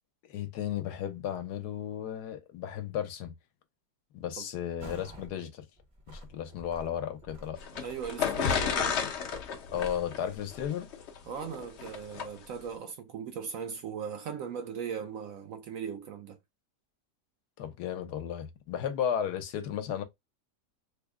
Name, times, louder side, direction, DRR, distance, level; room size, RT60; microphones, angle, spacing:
voice 1, 0.3-3.3 4.1-5.6 6.1-7.6 9.7-10.9 17.6-20.0, left 9 dB, 80° left, 1.2 m, -34 dB
sound 1, 4.8-5.3 5.8-10.7, equal, 30° right, 0.6 m, -49 dB
sound 2, 7.6-12.3, left 7 dB, 60° left, 0.7 m, -32 dB
voice 2, 7.7-9.0 11.3-16.4, right 7 dB, 70° right, 0.8 m, -38 dB
3.4 x 2.0 x 3.5 m
omnidirectional pair, 1.7 m